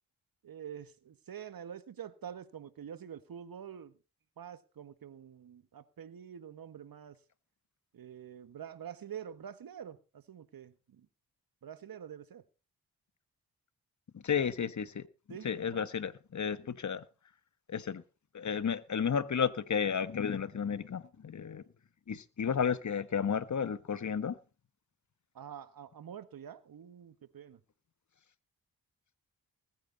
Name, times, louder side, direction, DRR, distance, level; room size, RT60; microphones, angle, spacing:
voice 1, 0.4-4.0 4.4-7.2 7.9-11.1 11.6-12.4 15.3-15.9 25.3-27.6, right 8 dB, 70° right, 1.6 m, -47 dB
voice 2, 14.1-15.1 15.4-17.0 17.7-18.0 18.3-21.6 22.1-24.4, left 7 dB, 50° left, 1.3 m, -32 dB
20.0 x 9.3 x 4.0 m
supercardioid pair, 40°, 37 cm